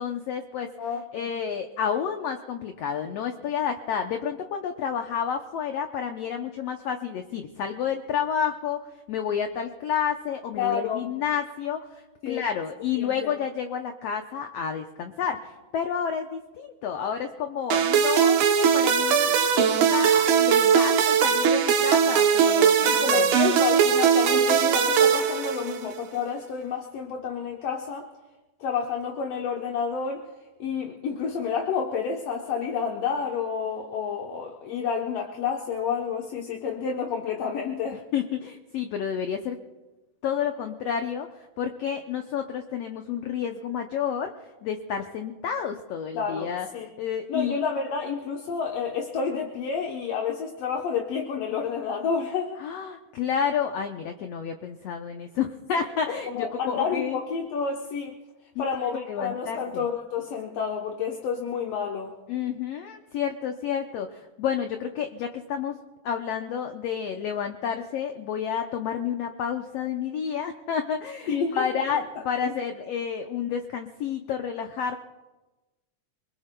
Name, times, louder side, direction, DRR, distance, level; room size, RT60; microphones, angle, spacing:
voice 1, 0.0-0.7 1.1-8.8 9.1-23.4 37.9-39.6 40.2-44.3 44.6-46.7 47.0-47.6 52.6-57.2 58.5-58.7 58.9-59.9 62.3-65.8 66.0-75.0, left 7 dB, 80° left, 5 dB, 1.4 m, -30 dB
voice 2, 0.8-1.3 10.6-11.1 12.2-12.4 13.0-13.4 22.8-28.1 28.6-30.3 30.6-38.0 46.1-46.9 47.3-52.6 56.1-58.2 58.6-62.1 71.3-71.8 72.4-72.5, left 6 dB, 65° left, 0 dB, 1.7 m, -29 dB
sound 1, 17.7-26.0, right 7 dB, 70° right, 2.2 m, -20 dB
29.0 x 20.5 x 2.2 m, 1.1 s
omnidirectional pair, 3.7 m